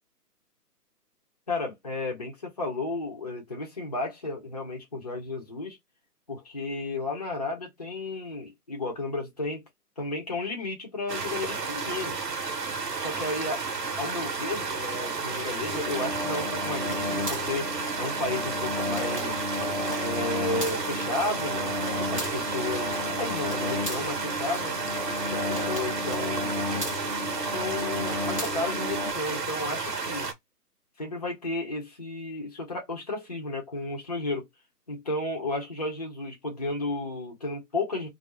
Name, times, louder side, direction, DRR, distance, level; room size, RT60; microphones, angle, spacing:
voice 1, 1.5-5.8 6.3-9.6 10.0-12.2 13.0-13.6 14.0-19.5 20.0-24.7 25.2-26.5 27.5-30.3 31.0-34.5 34.9-38.1, left 2 dB, 25° left, 0.6 m, -33 dB
sound 1, 11.1-30.3, right 4 dB, 80° right, 0.9 m, -32 dB
sound 2, 15.7-29.1, left 2 dB, 20° right, 0.5 m, -33 dB
2.4 x 2.0 x 3.0 m
figure-of-eight pair, 145°, 48 cm